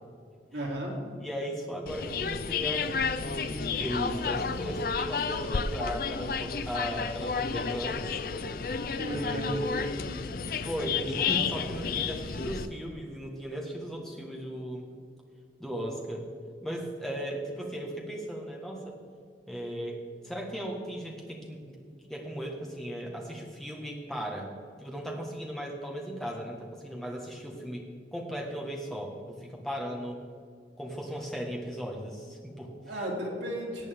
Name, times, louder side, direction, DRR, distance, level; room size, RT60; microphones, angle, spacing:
voice 1, 0.5-1.0 9.0-10.2 32.8-33.9, equal, 85° right, -2 dB, 2.7 m, -35 dB
voice 2, 1.2-8.2 9.0-9.7 10.4-14.9 15.6-16.3 16.6-18.9 19.5-21.8 22.1-24.5 24.8-30.2 30.8-32.7, equal, 5° left, -2 dB, 1.5 m, -37 dB
sound 1, 1.9-12.7, left 5 dB, 55° left, 0.5 m, -31 dB
18.0 x 8.2 x 3.6 m, 2.2 s
head